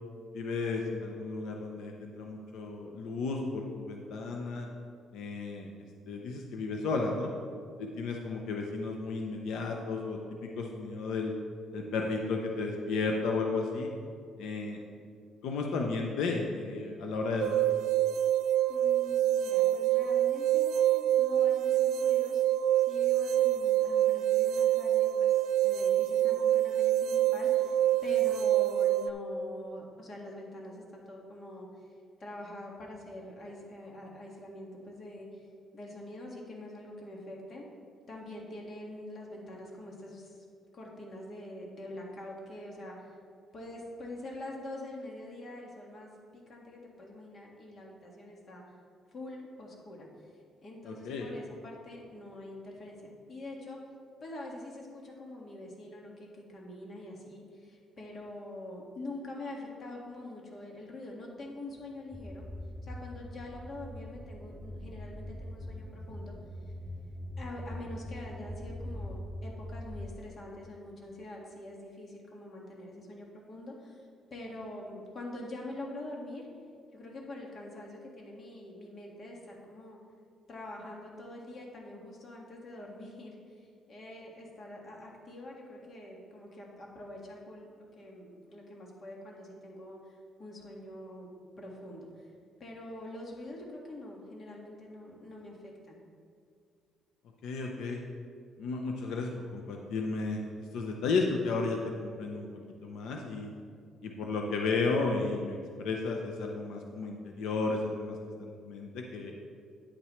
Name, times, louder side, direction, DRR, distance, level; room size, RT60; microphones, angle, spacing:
voice 1, 0.3-4.7 5.1-5.7 6.1-7.3 7.8-11.3 11.7-13.9 14.4-14.8 15.4-17.8 50.9-51.3 97.4-98.0 98.6-102.5 102.8-103.5 104.0-109.4, left 3 dB, 85° left, 1 dB, 0.8 m, -33 dB
sound 1, 17.4-29.1, right 12 dB, 80° right, 0.3 m, -26 dB
voice 2, 18.7-22.4 22.9-31.7 32.2-35.5 35.7-37.6 38.1-40.4 40.7-43.1 43.5-48.6 49.1-53.8 54.2-62.5 62.8-66.3 67.4-76.5 76.9-80.0 80.5-91.3 91.5-92.3 92.6-96.0, left 1 dB, 40° left, -1 dB, 1.9 m, -45 dB
sound 2, 62.1-70.1, left 1 dB, 5° right, 0.4 m, -42 dB
9.8 x 9.0 x 3.2 m, 2.2 s
cardioid pair, 115°, 0 cm